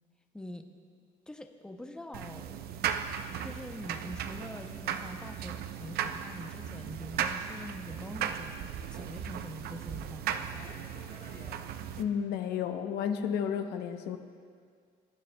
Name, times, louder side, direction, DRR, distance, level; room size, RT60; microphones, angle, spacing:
voice 1, 0.3-0.7 1.3-2.7 3.4-10.9, left 1 dB, 5° left, 5 dB, 0.6 m, -45 dB
sound 1, 2.1-12.0, right 8 dB, 65° right, 0.5 m, -37 dB
Fixed-wing aircraft airplane, 8.8-11.6, left 3 dB, 60° left, 3.1 m, -58 dB
voice 2, 12.0-14.2, left 8 dB, 85° left, 7 dB, 0.7 m, -32 dB
20.5 x 9.5 x 2.2 m, 2.1 s
cardioid pair, 110°, 17 cm